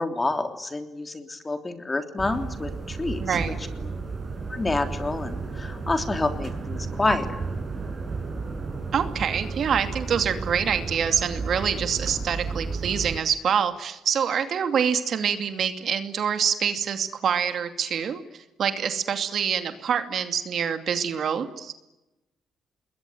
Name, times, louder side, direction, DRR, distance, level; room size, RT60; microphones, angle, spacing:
voice 1, 0.0-3.4 3.8-4.0 4.5-7.4, left 2 dB, 20° left, 7 dB, 3.4 m, -28 dB
sound 1, 2.2-13.2, right 4 dB, 35° right, 7.2 m, -33 dB
voice 2, 3.2-3.6 8.9-21.7, right 7 dB, 60° right, 8 dB, 2.6 m, -26 dB
27.0 x 21.5 x 9.4 m, 0.96 s
cardioid pair, 90°, 0 cm